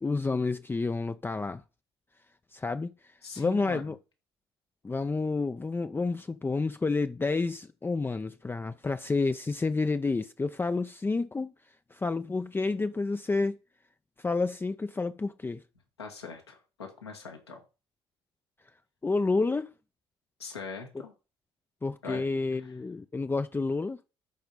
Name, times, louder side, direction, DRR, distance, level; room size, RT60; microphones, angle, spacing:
voice 1, 0.0-1.6 2.5-2.9 3.4-4.0 4.8-11.5 11.9-13.6 14.2-15.6 19.0-19.7 21.8-24.0, left 3 dB, 15° left, 0.5 m, -29 dB
voice 2, 3.2-3.8 16.0-17.6 20.4-21.1 22.0-22.2 22.6-22.7, left 4 dB, 85° left, 1.7 m, -42 dB
13.0 x 5.1 x 4.1 m
figure-of-eight pair, 50°, 13 cm